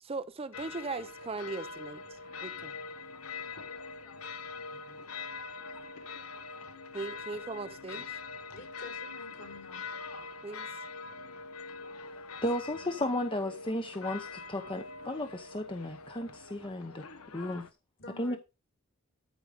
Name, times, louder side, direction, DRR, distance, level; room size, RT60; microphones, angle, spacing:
voice 1, 0.0-2.0 2.4-2.7 6.9-8.2 10.4-10.7, right 3 dB, 25° right, 0.5 m, -39 dB
sound 1, 0.5-17.7, left 4 dB, 80° left, 1.0 m, -43 dB
voice 2, 8.5-9.8 12.6-12.9 18.0-18.4, left 2 dB, 60° left, 3.8 m, -49 dB
voice 3, 12.4-17.0 17.3-17.7 18.2-18.4, left 1 dB, 25° left, 0.8 m, -34 dB
13.5 x 5.1 x 5.1 m
head